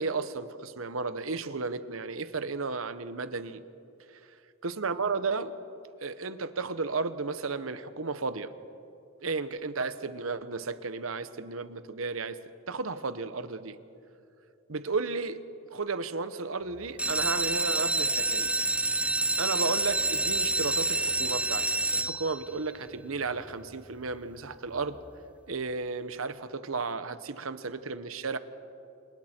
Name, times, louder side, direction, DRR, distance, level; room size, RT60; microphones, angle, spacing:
voice 1, 0.0-3.6 4.6-5.6 6.0-8.5 9.2-12.4 12.7-13.8 14.7-15.4 15.7-18.5 19.4-21.7 21.9-25.0 25.5-28.4, right 4 dB, 90° right, 12 dB, 1.1 m, -33 dB
sound 1, 16.9-22.6 23.2-23.7 24.1-24.2 24.4-24.5 25.0-25.1, right 2 dB, 5° right, 0.5 m, -28 dB
28.5 x 28.0 x 4.5 m, 2.7 s
head